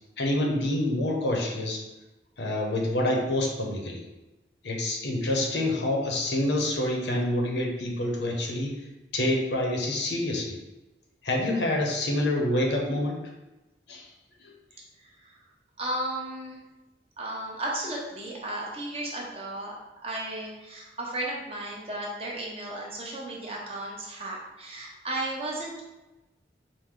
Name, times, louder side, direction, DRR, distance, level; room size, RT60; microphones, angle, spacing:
voice 1, 0.2-1.8 2.4-4.0 4.6-8.8 9.1-10.6 11.2-13.2 13.9-14.1 14.4-14.5, left 1 dB, 75° left, 0 dB, 0.8 m, -27 dB
voice 2, 15.0-15.4 15.8-16.6 17.2-19.7 20.0-25.8, right 1 dB, 35° right, -3 dB, 0.8 m, -34 dB
4.9 x 2.2 x 3.7 m, 1.0 s
head